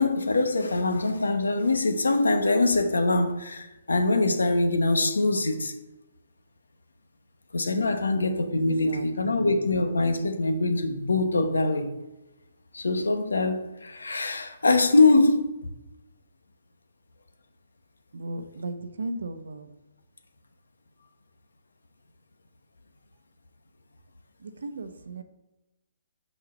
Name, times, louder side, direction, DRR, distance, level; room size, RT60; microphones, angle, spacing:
voice 1, 0.0-5.7 7.5-11.9 12.7-15.4, left 2 dB, 85° left, 8 dB, 1.0 m, -23 dB
voice 2, 8.6-9.6 18.1-19.7 24.4-25.2, right 2 dB, 75° right, 10 dB, 0.8 m, -36 dB
6.1 x 4.7 x 5.4 m, 1.0 s
hypercardioid pair, 140°, 0 cm